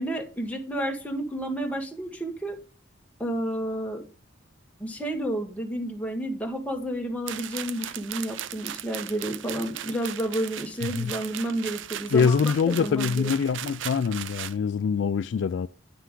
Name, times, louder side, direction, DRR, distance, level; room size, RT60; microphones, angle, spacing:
voice 1, 0.0-2.6 3.2-4.0 4.8-13.3, right 1 dB, 10° left, 1.5 m, -31 dB
sound 1, 7.3-14.6, right 11 dB, 75° right, 0.5 m, -37 dB
voice 2, 12.1-15.7, left 6 dB, 65° left, 0.3 m, -24 dB
9.5 x 5.7 x 3.7 m
head